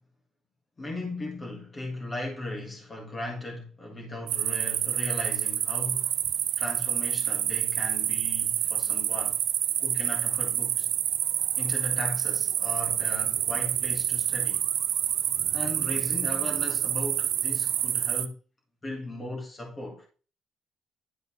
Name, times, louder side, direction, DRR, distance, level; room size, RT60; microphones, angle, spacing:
voice 1, 0.8-6.1 6.6-9.4 9.8-10.9 11.6-14.7 15.5-18.4 18.8-20.1, left 1 dB, 20° left, 1.7 m, -37 dB
sound 1, 4.3-18.2, right 10 dB, 55° right, 0.7 m, -28 dB
10.5 x 4.0 x 5.7 m
cardioid pair, 180°, 0 cm